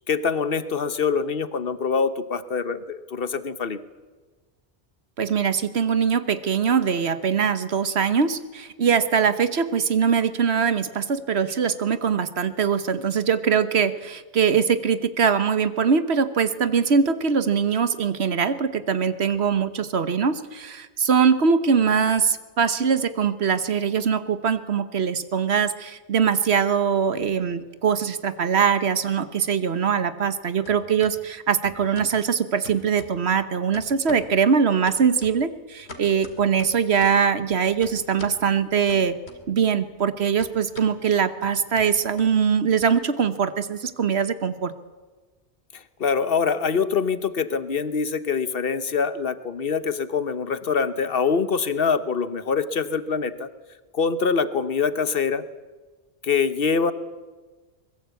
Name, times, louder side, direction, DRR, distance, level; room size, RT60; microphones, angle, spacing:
voice 1, 0.1-3.8 45.7-53.5 53.9-55.4 56.2-56.9, left 5 dB, 60° left, 13 dB, 1.3 m, -24 dB
voice 2, 5.2-39.2 39.5-44.7, right 6 dB, 70° right, 13 dB, 1.4 m, -22 dB
sound 1, 27.5-28.5 28.8-30.4 30.6-31.2 31.6-32.2 32.6-33.4 33.7-34.4 34.9-37.3 37.8-38.4 38.9-39.7 40.0-42.8, left 2 dB, 75° left, 2.5 m, -44 dB
23.5 x 21.0 x 8.3 m, 1.3 s
omnidirectional pair, 1.1 m